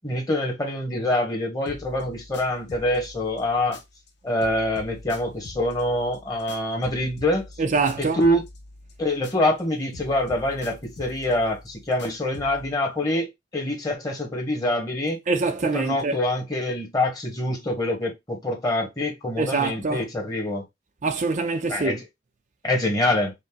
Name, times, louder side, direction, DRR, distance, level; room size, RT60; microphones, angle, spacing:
voice 1, 0.0-3.8 4.2-7.4 8.0-8.4 9.0-15.2 15.7-20.6 21.7-22.0 22.6-23.3, left 1 dB, 20° left, 1.5 m, -25 dB
sound 1, 1.7-4.1 4.4-9.6 9.9-12.7, left 2 dB, 70° left, 0.9 m, -44 dB
voice 2, 7.6-8.2 15.3-16.1 19.4-20.0 21.0-22.0, right 4 dB, 45° right, 0.6 m, -24 dB
5.2 x 2.1 x 3.7 m
head